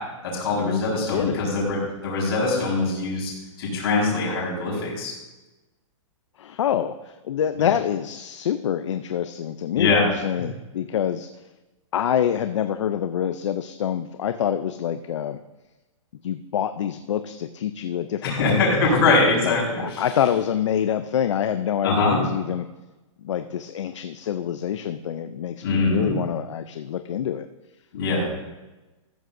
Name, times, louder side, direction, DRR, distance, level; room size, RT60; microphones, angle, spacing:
voice 1, 0.2-1.8 2.0-3.3 3.6-5.1 9.8-10.1 18.2-20.0 21.8-22.2 25.6-26.1 27.9-28.3, left 3 dB, 45° left, -5 dB, 4.5 m, -22 dB
voice 2, 1.1-1.5 6.4-11.3 11.9-15.4 16.2-18.8 19.4-22.7 23.2-27.5, left 9 dB, 60° left, 10 dB, 0.5 m, -26 dB
14.0 x 12.5 x 2.6 m, 1.1 s
hypercardioid pair, 175°, 17 cm